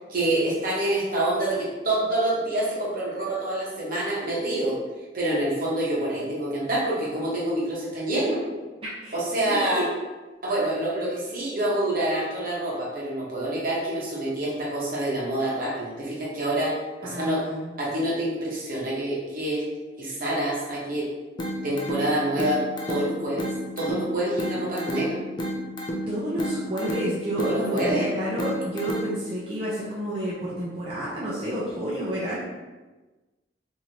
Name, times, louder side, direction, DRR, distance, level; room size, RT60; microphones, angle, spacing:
voice 1, 0.1-4.8 5.1-8.4 9.1-9.9 10.4-17.4 17.8-19.7 20.0-21.1 21.6-23.5 23.8-25.2 27.4-28.1, right 1 dB, 50° right, -5 dB, 1.0 m, -27 dB
voice 2, 9.4-9.9 17.0-17.7 26.1-32.4, right 1 dB, 30° right, -8 dB, 0.5 m, -30 dB
sound 1, 21.4-29.4, equal, 25° left, 0.4 m, -32 dB
3.2 x 2.7 x 2.7 m, 1.2 s
head